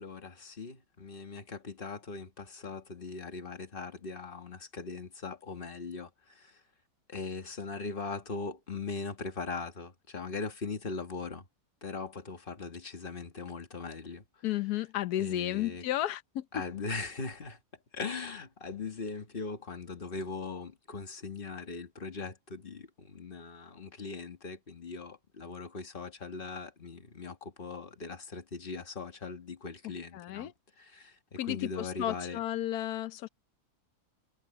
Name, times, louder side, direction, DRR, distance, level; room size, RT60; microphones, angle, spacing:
voice 1, 0.0-6.6 7.1-11.4 11.8-14.2 15.2-15.9 16.5-17.6 17.9-30.5 30.8-32.4, left 4 dB, 35° left, 1.9 m, -40 dB
voice 2, 14.4-16.5 30.1-30.5 31.4-33.3, left 13 dB, 80° left, 1.3 m, -33 dB
omnidirectional pair, 1.7 m